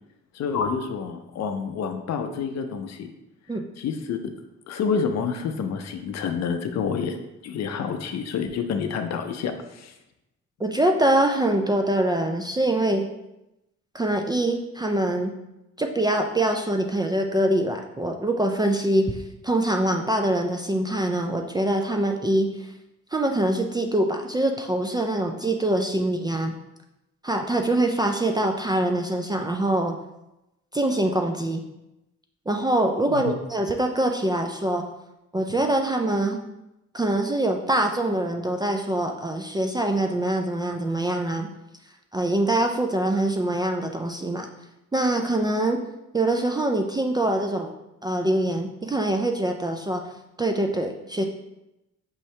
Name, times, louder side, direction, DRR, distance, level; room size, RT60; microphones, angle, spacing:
voice 1, 0.3-3.1 3.8-4.2 4.7-7.2 7.4-9.9 33.1-33.3, left 6 dB, 60° left, 6 dB, 0.5 m, -28 dB
voice 2, 10.6-13.1 13.9-15.3 15.8-22.7 23.1-26.5 27.2-30.0 30.7-31.6 32.5-34.8 35.3-36.4 36.9-41.5 42.1-44.5 44.9-45.8 46.1-47.7 48.0-50.0 50.4-51.2, right 1 dB, 15° right, 3 dB, 0.3 m, -24 dB
5.5 x 2.7 x 3.2 m, 0.91 s
cardioid pair, 90°, 30 cm